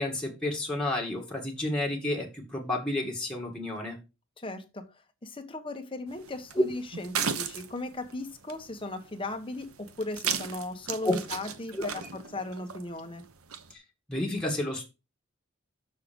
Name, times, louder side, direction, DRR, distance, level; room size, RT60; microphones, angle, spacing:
voice 1, 0.0-4.0 6.6-6.7 11.0-11.1 11.7-11.9 13.7-13.8 14.1-14.9, left 1 dB, 5° left, -1 dB, 2.3 m, -30 dB
voice 2, 4.4-4.8 5.2-13.2, left 2 dB, 25° left, 6 dB, 1.3 m, -37 dB
sound 1, 6.1-13.7, right 7 dB, 85° right, 1.0 m, -37 dB
6.8 x 6.5 x 5.4 m, 0.27 s
head